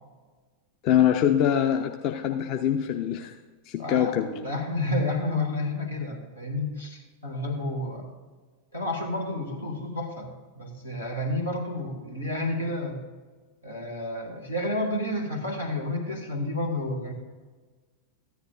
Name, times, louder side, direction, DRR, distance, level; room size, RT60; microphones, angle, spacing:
voice 1, 0.8-3.3 3.7-4.3, left 10 dB, 40° left, 4 dB, 0.6 m, -23 dB
voice 2, 3.8-8.2 8.7-13.0 13.6-17.1, left 2 dB, 85° left, -1 dB, 2.0 m, -30 dB
14.0 x 10.5 x 2.5 m, 1.4 s
figure-of-eight pair, 90°, 0 cm